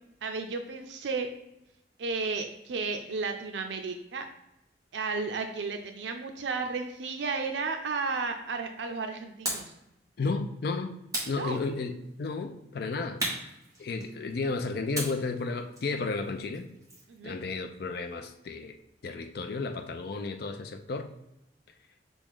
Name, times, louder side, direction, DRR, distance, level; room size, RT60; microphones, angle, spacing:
voice 1, 0.2-1.3 2.0-4.3 4.9-9.7 11.4-11.6 17.1-17.4, right 4 dB, 85° right, 0.5 m, -33 dB
sound 1, 9.4-9.8 11.1-12.0 13.2-14.3 14.9-17.2, right 1 dB, 20° right, 1.2 m, -36 dB
voice 2, 10.2-11.0 11.3-13.5 13.8-16.7 17.2-18.8 19.0-21.1, left 3 dB, 60° left, 0.4 m, -33 dB
6.1 x 2.4 x 3.6 m
head